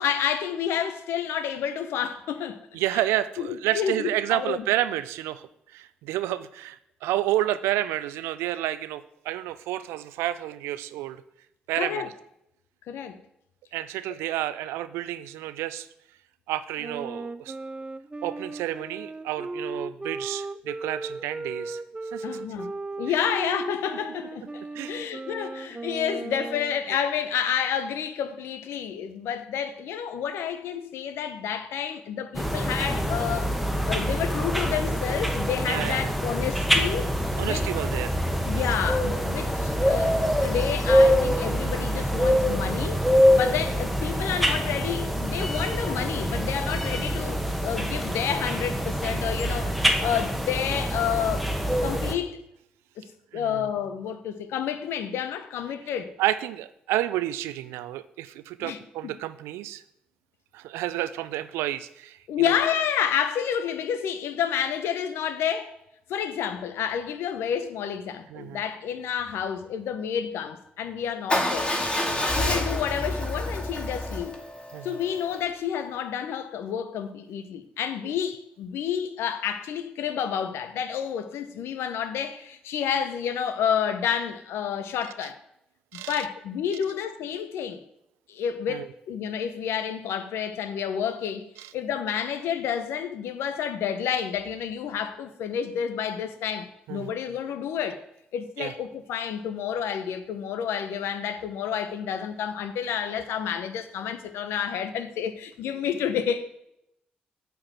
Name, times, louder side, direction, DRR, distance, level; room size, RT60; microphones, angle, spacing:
voice 1, 0.0-2.7 3.4-4.6 11.7-12.1 12.9-13.2 22.2-22.7 23.0-33.6 33.8-37.2 37.4-37.7 38.5-43.0 43.3-51.5 51.8-52.4 53.0-56.1 58.6-59.1 62.3-65.7 66.1-71.7 72.3-74.4 74.8-85.4 85.9-87.8 88.3-98.0 98.3-106.5, left 8 dB, 70° left, 0.8 m, -30 dB
voice 2, 2.7-11.2 11.7-12.0 13.7-15.9 16.5-17.5 18.2-21.8 22.1-22.2 24.7-24.9 35.7-36.1 37.4-38.1 43.2-43.6 53.3-53.7 56.2-59.8 60.5-62.2 62.4-62.5 68.3-68.6 72.0-72.4 74.7-75.0 85.9-86.2 88.7-88.9 91.6-91.7 96.9-97.1 98.6-98.7, right 14 dB, 80° right, 0.4 m, -30 dB
Wind instrument woodwind instrument, 16.8-26.8, right 3 dB, 25° right, 0.6 m, -36 dB
sound 1, 32.3-52.1, equal, ahead, 1.5 m, -25 dB
Motorcycle / Engine starting / Idling, 71.3-75.4, left 1 dB, 25° left, 2.4 m, -28 dB
8.7 x 4.6 x 7.4 m
hypercardioid pair, 40°, 4 cm